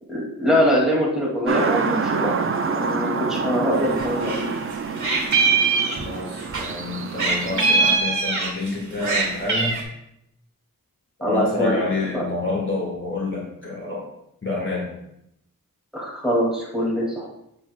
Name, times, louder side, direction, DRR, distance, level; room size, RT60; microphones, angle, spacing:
voice 1, 0.1-4.5 11.2-11.8 12.1-12.2 15.9-17.3, equal, ahead, -5 dB, 2.3 m, -23 dB
sound 1, 1.5-8.0, right 5 dB, 40° right, 0.4 m, -27 dB
Meow, 3.8-4.5 4.7-6.7 7.2-8.7 9.0-9.8, right 4 dB, 55° right, 1.8 m, -21 dB
voice 2, 6.0-9.8 11.2-14.0 14.4-14.9, left 3 dB, 35° left, -4 dB, 1.6 m, -28 dB
7.5 x 7.3 x 2.3 m, 0.79 s
wide cardioid pair, 95°, 35 cm